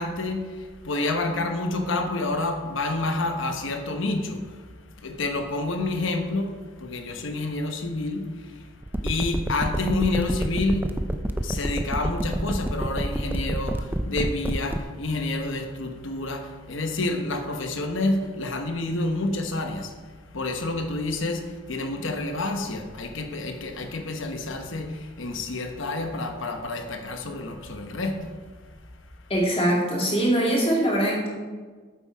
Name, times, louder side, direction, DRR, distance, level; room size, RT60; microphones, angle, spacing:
voice 1, 0.0-4.7 5.0-8.7 9.0-10.9 11.4-28.7, left 2 dB, 65° left, 5 dB, 1.0 m, -29 dB
sound 1, 8.8-14.8, right 1 dB, 10° right, 0.4 m, -27 dB
voice 2, 29.3-31.3, right 1 dB, 30° left, -2 dB, 2.2 m, -22 dB
8.8 x 7.3 x 4.8 m, 1.4 s
head